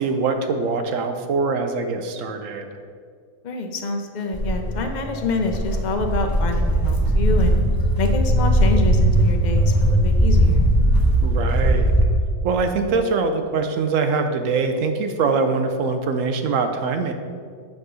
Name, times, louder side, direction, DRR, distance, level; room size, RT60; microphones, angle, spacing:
voice 1, 0.0-2.7 11.2-11.9 12.4-17.1, right 4 dB, 65° right, 6 dB, 0.9 m, -23 dB
voice 2, 3.4-7.6 8.0-10.7, left 3 dB, 70° left, 4 dB, 0.4 m, -27 dB
Walk footsteps, 4.3-12.0, right 1 dB, 20° left, 0.6 m, -19 dB
8.1 x 3.6 x 6.2 m, 2.1 s
omnidirectional pair, 1.6 m